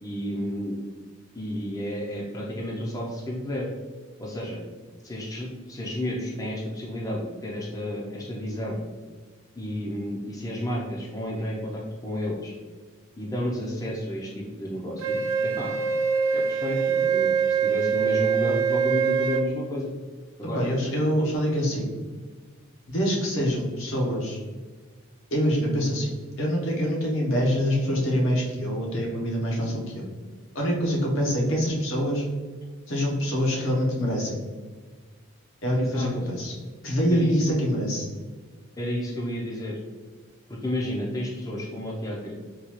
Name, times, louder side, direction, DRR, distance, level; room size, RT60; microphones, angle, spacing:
voice 1, 0.0-0.8 1.3-3.7 4.2-4.6 5.0-8.8 9.6-12.5 13.2-15.8 16.3-19.9 20.4-20.7 35.8-36.1 37.1-37.6 38.8-39.8 40.5-42.3, left 1 dB, 15° left, -3 dB, 0.5 m, -31 dB
Wind instrument woodwind instrument, 15.0-19.5, right 6 dB, 80° right, 0.4 m, -24 dB
voice 2, 20.5-21.9 22.9-24.4 25.3-26.1 26.4-30.1 30.5-32.3 32.9-34.4 35.6-36.5 36.8-38.1, equal, 75° left, -2 dB, 0.9 m, -25 dB
3.7 x 2.3 x 3.0 m, 1.4 s
head